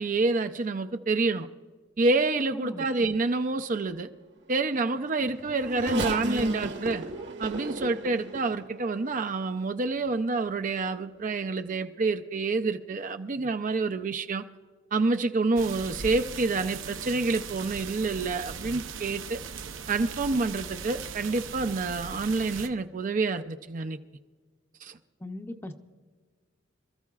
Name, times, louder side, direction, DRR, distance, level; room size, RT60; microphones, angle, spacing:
voice 1, 0.0-1.5 2.0-4.1 4.5-7.0 7.4-14.4 14.9-19.4 19.9-24.0 24.8-25.0, right 3 dB, 40° right, 8 dB, 0.5 m, -28 dB
voice 2, 2.5-2.8 25.2-25.7, left 1 dB, 10° left, 6 dB, 0.7 m, -38 dB
Race car auto racing / Accelerating revving vroom, 4.8-9.4 10.1-10.2 11.3-11.5, right 1 dB, 65° right, 1.3 m, -34 dB
sound 1, 15.6-22.7, right 6 dB, 80° right, 0.8 m, -39 dB
26.5 x 14.0 x 2.4 m, 1.5 s
head